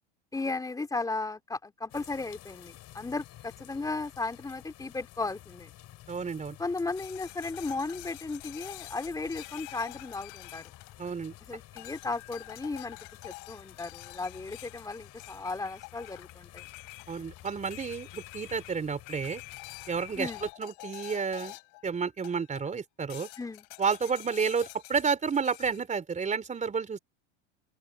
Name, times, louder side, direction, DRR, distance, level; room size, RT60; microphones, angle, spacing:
voice 1, 0.3-5.7 6.6-10.7 11.4-13.0 13.2-16.6 20.2-20.4 23.4-23.7, left 3 dB, 10° left, 2.8 m, -35 dB
sound 1, 1.9-20.5, left 14 dB, 45° left, 7.3 m, -52 dB
voice 2, 6.1-6.6 11.0-11.3 17.1-19.4 19.9-21.6 21.8-23.3 23.8-27.0, right 5 dB, 20° right, 3.9 m, -31 dB
sound 2, 7.0-11.3 11.8-21.8 22.2-22.7 23.1-25.8, left 31 dB, 65° left, 5.0 m, -47 dB
open air
supercardioid pair, 115°, 35 cm